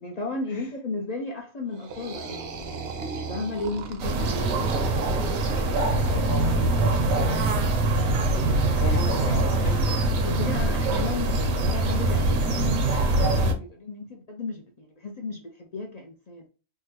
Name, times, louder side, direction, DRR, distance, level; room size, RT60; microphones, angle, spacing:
voice 1, 0.0-2.7 3.1-4.7 10.2-16.4, left 3 dB, 55° left, 0.4 m, -34 dB
sound 1, 1.7-6.5, right 4 dB, 60° right, 0.7 m, -37 dB
sound 2, 4.0-13.5, right 2 dB, 80° right, 1.1 m, -23 dB
voice 2, 5.5-7.8 8.3-10.0, left 2 dB, 75° left, 1.5 m, -37 dB
3.6 x 2.1 x 2.9 m
omnidirectional pair, 1.4 m